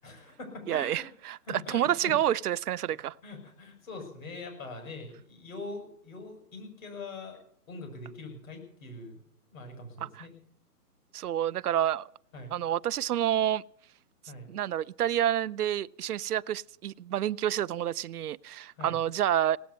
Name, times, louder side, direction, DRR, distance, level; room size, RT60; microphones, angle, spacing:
voice 1, 0.0-1.1 1.5-2.1 3.2-7.4 7.7-9.2 9.5-10.3 12.3-12.5 14.3-14.5 18.8-19.0, left 3 dB, 55° left, 6.6 m, -43 dB
voice 2, 0.7-3.2 10.0-10.3 11.1-12.1 12.5-13.6 14.5-19.6, right 11 dB, 70° right, 0.5 m, -29 dB
18.0 x 8.6 x 9.4 m
hypercardioid pair, 155°, 47 cm